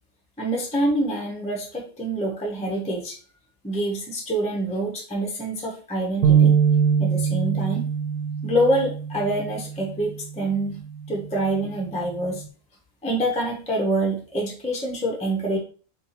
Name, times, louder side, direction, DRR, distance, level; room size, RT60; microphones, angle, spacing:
voice 1, 0.4-3.2 3.6-6.6 7.0-7.8 8.4-10.8 11.1-12.4 13.0-15.6, right 1 dB, 5° left, -1 dB, 0.8 m, -26 dB
sound 1, 6.2-12.5, right 7 dB, 85° right, 1.1 m, -24 dB
4.5 x 2.7 x 4.1 m, 0.40 s
omnidirectional pair, 1.6 m